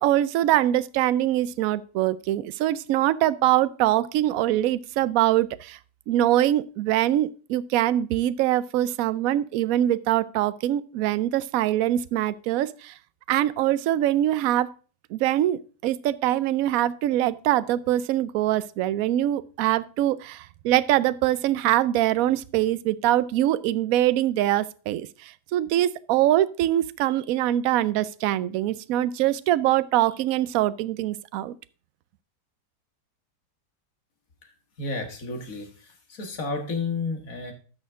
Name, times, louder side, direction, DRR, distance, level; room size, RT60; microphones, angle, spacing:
voice 1, 0.0-5.8 6.1-12.9 13.3-14.7 15.1-31.6, right 13 dB, 70° right, 0.9 m, -23 dB
voice 2, 34.8-37.5, left 3 dB, 55° left, 2.2 m, -31 dB
11.5 x 6.4 x 3.6 m
omnidirectional pair, 1.8 m